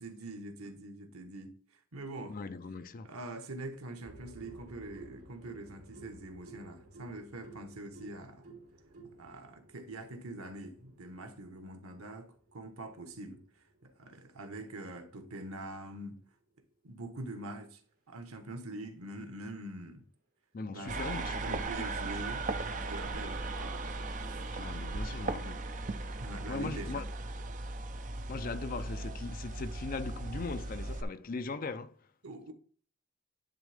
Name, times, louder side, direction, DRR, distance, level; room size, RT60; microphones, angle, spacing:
voice 1, 0.0-1.6 1.9-2.4 3.0-8.5 9.2-13.4 13.8-16.2 16.8-17.8 18.1-20.0 20.6-22.4 22.7-24.7 25.5-25.6 26.1-27.0 32.2-32.5, right 2 dB, 85° right, 1.2 m, -44 dB
voice 2, 2.3-3.1 20.5-21.9 24.5-25.6 26.5-27.1 28.3-31.9, left 3 dB, 40° left, 0.5 m, -39 dB
sound 1, 4.0-15.9 17.3-17.4, right 3 dB, 70° right, 3.2 m, -55 dB
sound 2, 20.9-31.0, right 2 dB, 35° right, 0.5 m, -37 dB
10.5 x 3.6 x 3.4 m
head